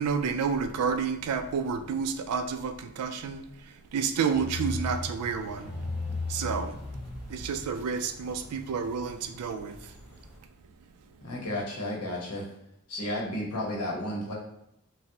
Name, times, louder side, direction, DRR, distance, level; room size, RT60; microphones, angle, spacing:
voice 1, 0.0-5.7 6.3-6.8 7.3-9.9, right 6 dB, 80° right, 8 dB, 0.3 m, -30 dB
sound 1, 4.3-10.4, left 2 dB, 5° right, 1.0 m, -38 dB
voice 2, 11.2-12.5 12.9-14.3, left 1 dB, 80° left, -2 dB, 0.9 m, -32 dB
4.0 x 2.0 x 2.7 m, 0.81 s
head